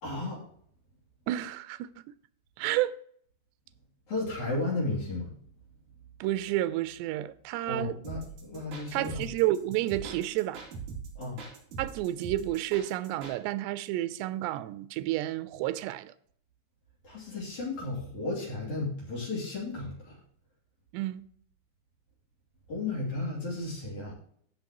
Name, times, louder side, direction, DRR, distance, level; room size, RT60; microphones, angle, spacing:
voice 1, 0.0-0.4 4.1-5.3 7.7-9.2 11.2-11.4 17.0-20.2 22.7-24.1, left 2 dB, 50° left, 3.9 m, -34 dB
voice 2, 1.3-2.0 2.6-2.9 6.2-8.0 8.9-10.6 11.8-16.1 20.9-21.2, right 14 dB, 90° right, 2.7 m, -30 dB
sound 1, 8.0-13.4, right 5 dB, 50° right, 4.0 m, -42 dB
16.0 x 6.3 x 3.0 m
omnidirectional pair, 4.7 m